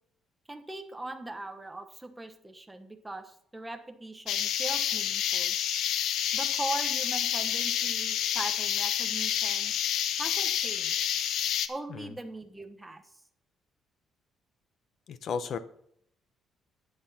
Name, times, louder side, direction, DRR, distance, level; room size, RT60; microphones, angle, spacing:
voice 1, 0.5-5.6 6.3-9.7 10.2-11.2 11.7-13.0, right 2 dB, 10° right, 6 dB, 1.1 m, -40 dB
sound 1, 4.3-11.7, left 10 dB, 75° left, 0.8 m, -29 dB
voice 2, 15.1-15.6, left 6 dB, 45° left, 12 dB, 0.8 m, -34 dB
11.5 x 8.8 x 4.2 m, 0.69 s
cardioid pair, 170°, 0 cm